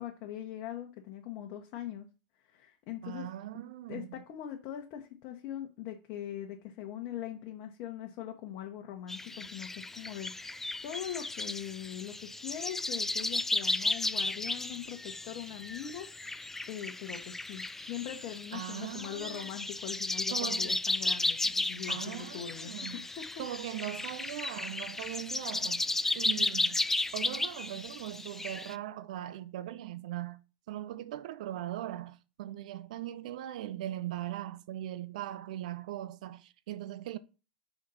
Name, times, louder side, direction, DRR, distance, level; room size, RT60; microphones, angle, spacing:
voice 1, 0.0-2.1 2.4-3.3 3.9-23.2, left 10 dB, 50° left, 1.1 m, -42 dB
voice 2, 3.0-4.1 18.5-19.5 20.3-20.7 21.9-23.0 23.4-25.8 26.1-26.8 27.1-30.4 30.7-37.2, right 13 dB, 65° right, 0.5 m, -40 dB
sound 1, 9.1-28.7, left 2 dB, 10° left, 0.3 m, -34 dB
5.0 x 4.0 x 5.6 m
hypercardioid pair, 95°, 4 cm